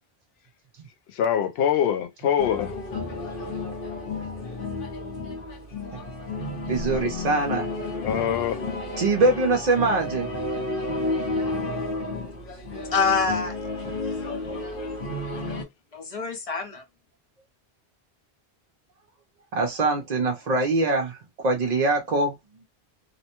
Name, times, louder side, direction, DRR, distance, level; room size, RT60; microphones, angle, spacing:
voice 1, 1.1-2.9 8.0-8.6, left 9 dB, 75° left, 0.8 m, -24 dB
sound 1, 2.4-15.6, left 2 dB, 60° left, 1.1 m, -31 dB
voice 2, 6.7-7.7 9.0-10.3 19.5-21.2 21.4-22.4, right 2 dB, 50° right, 0.6 m, -23 dB
voice 3, 12.9-13.6 14.0-14.5 15.9-16.8, left 4 dB, 40° left, 0.6 m, -26 dB
2.8 x 2.1 x 2.8 m
omnidirectional pair, 1.1 m